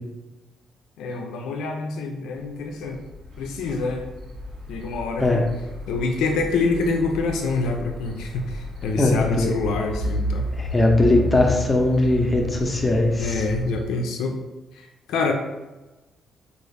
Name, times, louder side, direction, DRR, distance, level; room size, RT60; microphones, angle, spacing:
voice 1, 1.0-3.0 3.4-4.0 4.7-5.5 5.9-10.5 13.2-14.4 14.7-15.3, left 3 dB, 85° left, 2 dB, 0.4 m, -26 dB
sound 1, 2.5-13.8, left 1 dB, 70° right, 1.0 m, -32 dB
voice 2, 9.0-9.5 10.6-13.4, left 2 dB, 25° left, 2 dB, 0.6 m, -20 dB
3.6 x 2.4 x 3.3 m, 1.1 s
cardioid pair, 90°, 0 cm